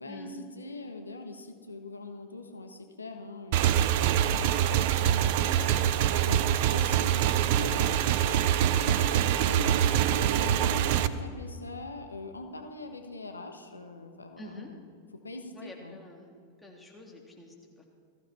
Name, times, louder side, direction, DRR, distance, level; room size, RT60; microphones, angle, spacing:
voice 1, 0.0-5.8 6.2-14.8 15.2-16.0, left 2 dB, 80° left, 5 dB, 1.3 m, -43 dB
Motorcycle / Engine, 3.5-11.1, right 10 dB, 50° right, 0.6 m, -25 dB
voice 2, 5.5-5.9 14.4-14.7 15.5-16.3 16.6-17.8, left 2 dB, 5° left, -1 dB, 2.9 m, -47 dB
19.5 x 15.0 x 4.4 m, 2.3 s
figure-of-eight pair, 90°, 0 cm